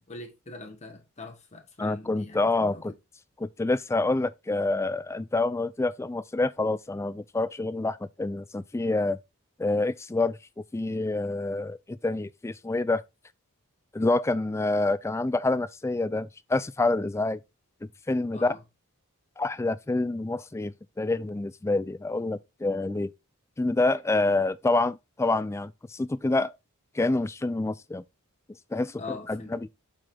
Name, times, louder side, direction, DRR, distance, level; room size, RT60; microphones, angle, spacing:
voice 1, 0.0-2.9 18.3-18.6 29.0-29.6, left 3 dB, 30° left, 1.1 m, -42 dB
voice 2, 1.8-2.9 3.4-9.2 9.6-10.4 10.7-13.0 13.9-17.4 18.1-18.5 19.4-23.1 23.6-26.5 27.0-28.0 28.7-29.0 29.3-29.7, left 2 dB, 10° left, 0.3 m, -27 dB
7.5 x 4.1 x 4.4 m
head